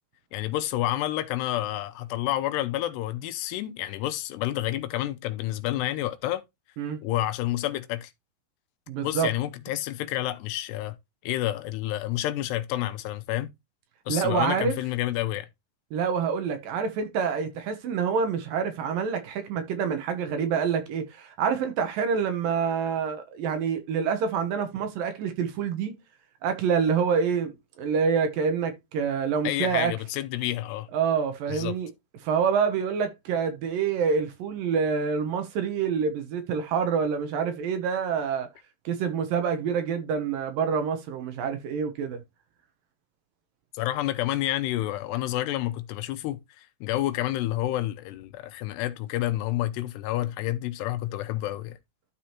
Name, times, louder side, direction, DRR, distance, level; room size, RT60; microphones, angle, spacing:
voice 1, 0.3-6.4 7.0-8.1 9.0-11.0 11.2-13.5 14.1-15.5 29.4-30.9 31.5-31.8 43.7-51.8, left 14 dB, 85° left, 3.0 m, -29 dB
voice 2, 8.9-9.3 14.1-14.8 15.9-25.9 26.4-29.9 30.9-31.9 32.2-38.5 38.9-42.2, right 6 dB, 70° right, 2.5 m, -27 dB
12.5 x 4.9 x 2.9 m
omnidirectional pair, 4.7 m